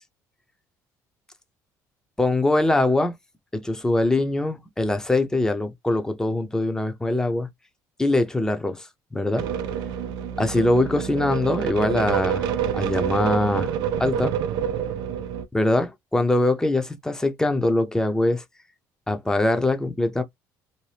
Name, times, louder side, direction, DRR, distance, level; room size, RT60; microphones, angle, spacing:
voice 1, 2.2-3.1 3.5-7.5 8.0-9.5 10.4-13.7 14.0-14.4 15.5-18.4 19.1-20.2, left 2 dB, 10° left, 0.6 m, -23 dB
sound 1, 9.4-15.4, right 8 dB, 70° right, 0.5 m, -27 dB
2.8 x 2.1 x 3.3 m
supercardioid pair, 85°, 8 cm